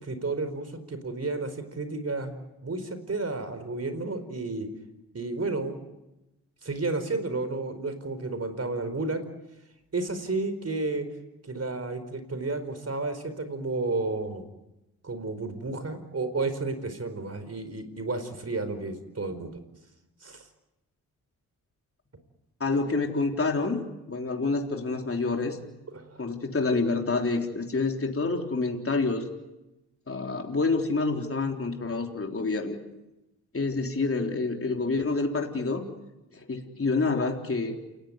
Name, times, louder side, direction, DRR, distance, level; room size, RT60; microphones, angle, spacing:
voice 1, 0.0-2.4 2.6-4.7 5.1-5.8 6.6-9.2 9.9-11.1 11.4-14.4 15.0-19.6 20.2-20.5 25.9-26.2, right 3 dB, 40° right, 10 dB, 4.6 m, -32 dB
voice 2, 22.6-25.6 26.2-29.2 30.1-32.8 33.5-35.9 36.3-37.8, left 3 dB, 35° left, 2 dB, 3.8 m, -28 dB
28.5 x 17.0 x 9.6 m, 0.97 s
supercardioid pair, 45°, 39 cm